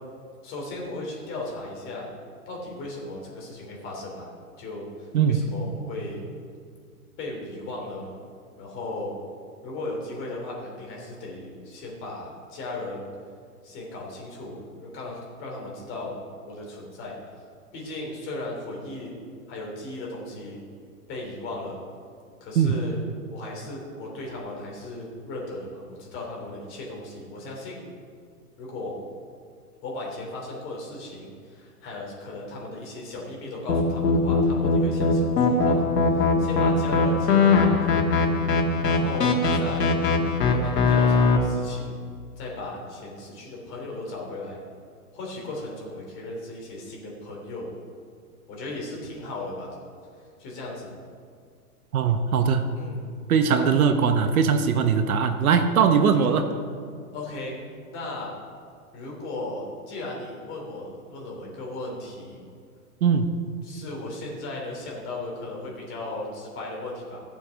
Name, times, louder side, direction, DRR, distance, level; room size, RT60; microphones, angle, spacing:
voice 1, 0.4-2.1 2.4-4.3 4.6-6.2 7.2-8.1 8.6-9.2 9.6-13.1 13.6-17.1 17.7-19.1 19.5-20.6 21.1-21.8 22.4-23.0 23.3-27.8 28.6-29.0 29.8-38.0 38.8-39.9 40.5-41.9 42.4-44.6 45.1-47.7 48.5-49.7 50.4-50.9 52.8-53.0 53.5-53.7 56.1-56.4 57.1-57.5 57.9-58.3 58.9-62.4 63.6-67.2, left 2 dB, 25° left, -2 dB, 3.2 m, -36 dB
sound 1, 33.7-41.4, left 4 dB, 85° left, 1.9 m, -21 dB
voice 2, 51.9-52.7 53.3-56.5 63.0-63.3, right 6 dB, 65° right, 8 dB, 1.1 m, -20 dB
16.0 x 7.3 x 5.2 m, 2.2 s
hypercardioid pair, 145°, 47 cm